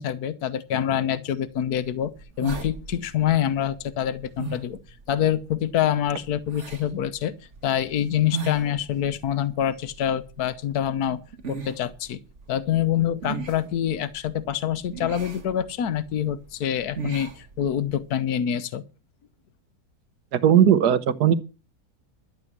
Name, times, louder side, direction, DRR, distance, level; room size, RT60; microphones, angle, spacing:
voice 1, 0.0-2.1 2.4-7.3 7.6-11.2 11.5-12.2 12.5-18.8, left 10 dB, 75° left, 1.4 m, -26 dB
sound 1, 1.5-18.1, right 4 dB, 50° right, 1.8 m, -40 dB
voice 2, 20.3-21.3, right 9 dB, 80° right, 1.5 m, -18 dB
12.5 x 8.2 x 6.0 m
omnidirectional pair, 1.7 m